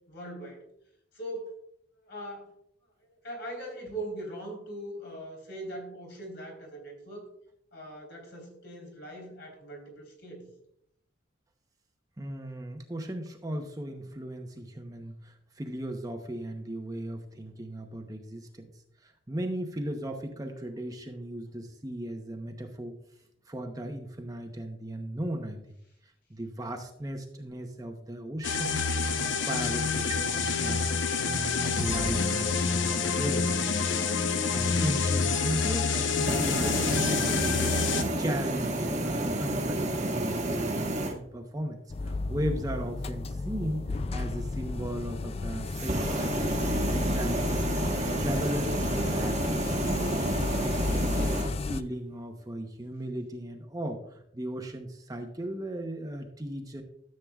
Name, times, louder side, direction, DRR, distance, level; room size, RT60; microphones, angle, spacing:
voice 1, 0.1-0.6 1.1-1.6 2.0-2.5 3.0-7.3 7.7-10.5, right 1 dB, 60° left, 0 dB, 3.7 m, -41 dB
voice 2, 12.2-18.7 19.0-23.0 23.5-25.8 26.0-30.8 31.2-47.5 48.2-56.8, right 1 dB, 20° right, 3 dB, 0.8 m, -37 dB
sound 1, 28.4-38.0, left 5 dB, 75° left, 0.8 m, -27 dB
sound 2, 36.1-41.1 45.7-51.5, right 1 dB, 35° right, 1.3 m, -30 dB
sound 3, 41.9-51.8, left 3 dB, 30° left, 0.3 m, -33 dB
13.5 x 7.7 x 2.3 m, 0.73 s
head